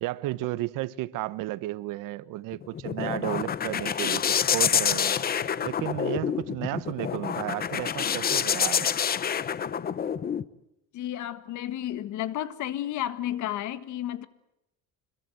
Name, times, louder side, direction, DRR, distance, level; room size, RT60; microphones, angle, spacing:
voice 1, 0.0-5.2 5.6-8.9, right 17 dB, 80° right, 1.1 m, -33 dB
sound 1, 2.5-10.4, left 8 dB, 30° left, 0.8 m, -27 dB
voice 2, 10.9-14.3, left 12 dB, 65° left, 1.7 m, -32 dB
26.0 x 22.5 x 7.9 m
cardioid pair, 145°, 32 cm